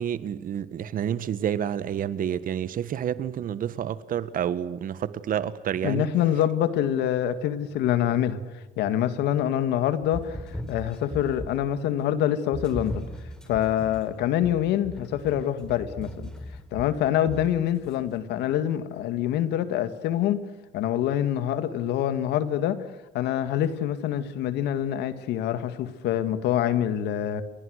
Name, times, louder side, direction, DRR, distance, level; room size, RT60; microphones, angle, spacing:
voice 1, 0.0-6.1, right 9 dB, 55° right, 1.6 m, -29 dB
voice 2, 5.8-8.4 8.8-13.0 13.5-16.3 16.7-20.4 20.7-22.8 23.1-27.4, left 11 dB, 85° left, 2.1 m, -25 dB
sound 1, 10.0-11.8 12.5-17.9, left 1 dB, 5° left, 5.0 m, -38 dB
29.0 x 24.0 x 6.6 m
cardioid pair, 110°, 17 cm